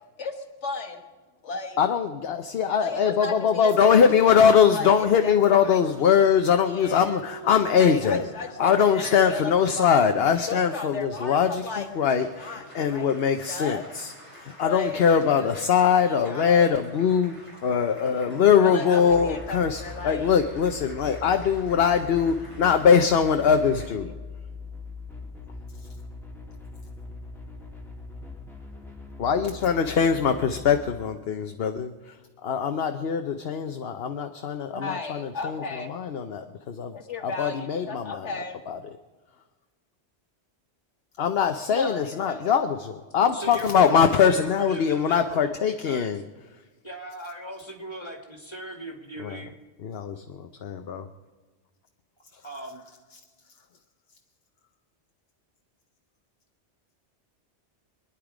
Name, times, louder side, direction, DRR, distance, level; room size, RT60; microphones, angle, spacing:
voice 1, 0.2-1.0 1.4-1.8 2.8-3.9 4.7-5.4 5.6-5.8 6.1-6.2 6.7-7.2 7.8-10.0 10.5-11.9 12.4-13.1 13.5-13.9 14.6-15.0 15.2-15.7 16.1-16.8 18.6-20.3 34.7-35.9 36.9-38.6 41.7-42.5, left 4 dB, 80° left, 4 dB, 1.7 m, -35 dB
voice 2, 1.8-8.3 8.6-24.1 29.2-38.3 38.7-38.8 41.2-46.2 49.2-49.4 49.8-51.1 52.3-52.4, left 7 dB, 60° left, 6 dB, 1.0 m, -22 dB
Applause, 3.9-23.9, right 1 dB, 25° right, 6.7 m, -48 dB
sound 1, 19.1-31.1, left 3 dB, ahead, 2.9 m, -41 dB
voice 3, 43.3-45.5 45.8-46.1 46.8-49.5 52.4-52.8, right 1 dB, 25° left, 2 dB, 2.8 m, -39 dB
25.5 x 10.5 x 5.0 m, 1.3 s
omnidirectional pair, 1.2 m